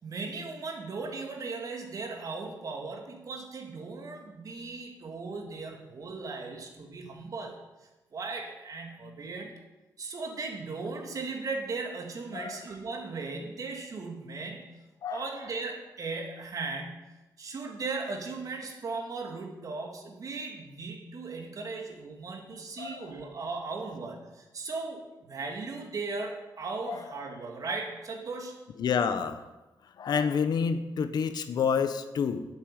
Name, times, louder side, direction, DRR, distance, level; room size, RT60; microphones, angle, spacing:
voice 1, 0.0-7.6 8.1-9.5 10.0-14.7 15.1-17.1 17.4-28.5, right 3 dB, 50° right, 3 dB, 2.5 m, -37 dB
voice 2, 12.3-12.6 15.0-15.3 22.8-23.1 26.9-27.1 28.8-29.4 30.0-32.5, left 6 dB, 70° left, 10 dB, 1.0 m, -29 dB
11.0 x 8.3 x 9.0 m, 1.1 s
wide cardioid pair, 135°, 7 cm